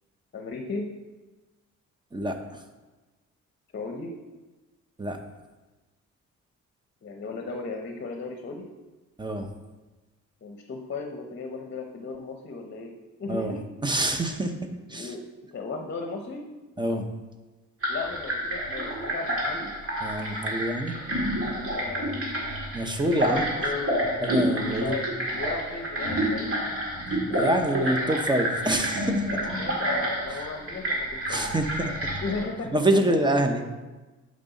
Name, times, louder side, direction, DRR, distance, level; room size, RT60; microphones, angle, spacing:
voice 1, 0.3-0.9 3.7-4.1 7.0-8.7 10.4-12.9 13.2-13.6 14.9-15.2 15.5-16.4 17.9-19.7 21.7-22.2 22.8-22.9 23.2-24.0 24.5-25.0 25.3-26.6 29.6-31.6 32.2-32.8 33.1-33.2, left 4 dB, 40° left, 3 dB, 0.8 m, -35 dB
voice 2, 2.1-2.6 5.0-5.2 9.2-9.5 13.3-13.6 13.8-15.1 16.8-17.1 20.0-21.0 22.7-23.4 24.2-25.0 27.3-29.4 30.3-30.4 31.3-31.9 32.7-33.6, right 1 dB, 15° right, 6 dB, 0.7 m, -26 dB
sound 1, 17.8-32.5, equal, 50° right, 1.9 m, -29 dB
6.4 x 5.3 x 4.0 m, 1.2 s
cardioid pair, 90°, 30 cm